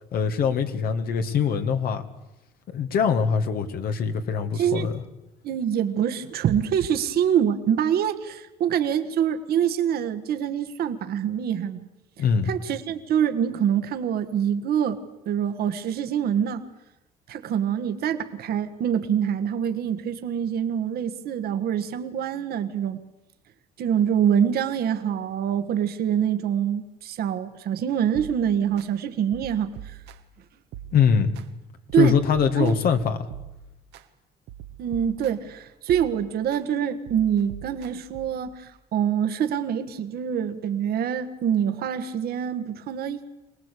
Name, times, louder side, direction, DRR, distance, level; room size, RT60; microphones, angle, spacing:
voice 1, 0.1-2.0 2.7-4.9 12.2-12.5 30.9-31.3 32.0-33.3, left 6 dB, 65° left, 7 dB, 2.0 m, -23 dB
voice 2, 4.5-4.9 5.4-11.8 12.5-16.6 17.3-23.0 23.8-30.0 31.9-32.2 32.6-32.8 34.8-43.2, right 8 dB, 65° right, 8 dB, 1.6 m, -25 dB
sound 1, 28.1-28.9 29.3-30.4 30.7-31.5 31.9-34.0 34.5-35.5 35.9-36.6 37.1-38.5, right 10 dB, 80° right, 1.5 m, -43 dB
24.5 x 19.0 x 8.4 m, 0.95 s
cardioid pair, 110°, 17 cm